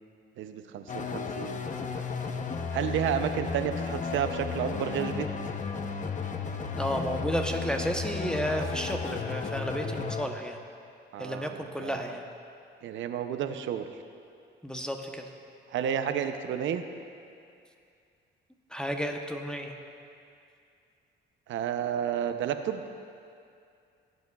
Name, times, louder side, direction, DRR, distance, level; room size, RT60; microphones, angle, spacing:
voice 1, 0.4-1.7 2.7-5.3 11.1-12.0 12.8-13.9 15.7-16.8 21.5-22.8, right 9 dB, 75° right, 8 dB, 0.6 m, -31 dB
sound 1, 0.9-10.3, left 5 dB, 40° left, 0.7 m, -34 dB
voice 2, 6.7-10.6 11.2-12.2 14.6-15.2 18.7-19.7, equal, 5° left, 3 dB, 0.8 m, -32 dB
16.5 x 8.3 x 2.3 m, 2.5 s
cardioid pair, 90°, 20 cm